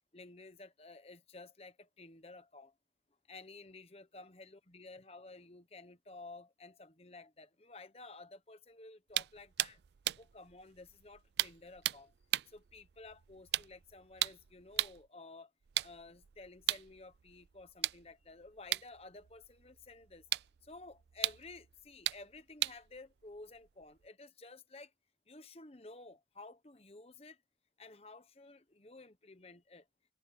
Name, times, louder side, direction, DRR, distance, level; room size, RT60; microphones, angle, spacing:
voice 1, 0.1-2.7 3.3-9.8 10.2-12.1 12.5-15.5 15.8-20.2 20.6-24.9 25.3-27.4 27.8-29.8, left 3 dB, 35° left, 1.1 m, -53 dB
sound 1, 9.1-15.1 15.6-24.1, right 14 dB, 75° right, 0.4 m, -39 dB
head